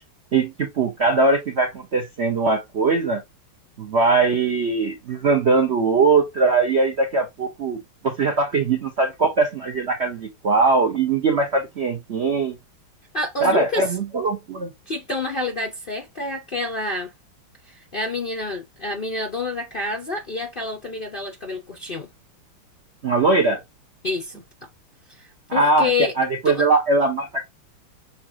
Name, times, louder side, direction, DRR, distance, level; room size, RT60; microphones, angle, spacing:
voice 1, 0.3-3.2 3.8-12.6 13.4-14.7 23.0-23.6 25.5-25.9 26.2-27.4, right 3 dB, 85° right, 0.5 m, -21 dB
voice 2, 13.1-13.9 14.9-17.1 17.7-22.1 24.0-24.7 25.1-26.1 26.4-26.7, left 2 dB, 80° left, 0.4 m, -28 dB
7.0 x 2.5 x 2.7 m
omnidirectional pair, 2.3 m